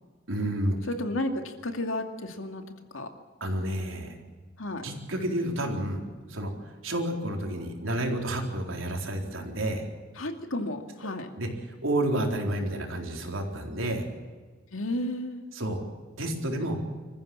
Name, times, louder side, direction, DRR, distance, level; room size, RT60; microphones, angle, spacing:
voice 1, 0.3-0.8 3.4-4.1 4.8-6.0 6.3-6.5 6.8-9.8 11.4-11.5 11.8-14.1 15.5-15.8 16.2-16.8, right 1 dB, 85° right, 2 dB, 4.1 m, -30 dB
voice 2, 0.9-2.6 2.9-3.1 4.6-4.8 10.2-11.3 14.7-15.4, left 1 dB, 90° left, 5 dB, 2.5 m, -32 dB
26.0 x 15.0 x 8.9 m, 1.4 s
head